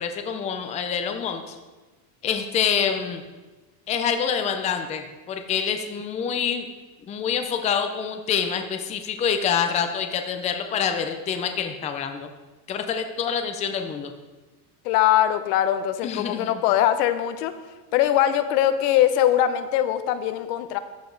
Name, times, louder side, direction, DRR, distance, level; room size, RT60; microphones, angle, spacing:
voice 1, 0.0-1.6 2.2-3.2 3.9-6.7 7.1-12.3 12.7-14.1 16.0-16.5, left 7 dB, 15° left, 6 dB, 0.4 m, -26 dB
voice 2, 14.8-17.5 17.9-20.8, left 11 dB, 75° left, 11 dB, 0.8 m, -21 dB
13.5 x 4.9 x 3.9 m, 1.2 s
supercardioid pair, 145°, 48 cm